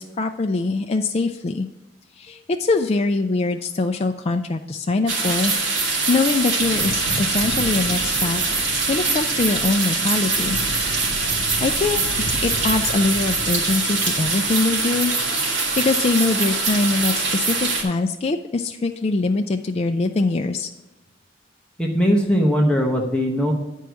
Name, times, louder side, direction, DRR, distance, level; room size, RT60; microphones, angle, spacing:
voice 1, 0.0-1.7 2.2-8.4 8.9-10.6 11.3-15.1 15.8-20.7, left 3 dB, 35° left, 5 dB, 0.4 m, -23 dB
sound 1, 5.1-17.8, right 3 dB, 70° right, 2.4 m, -23 dB
sound 2, 6.6-14.7, right 1 dB, 85° right, 1.7 m, -34 dB
voice 2, 21.8-23.5, equal, 5° left, 0 dB, 0.9 m, -19 dB
9.8 x 4.6 x 6.2 m, 1.0 s
head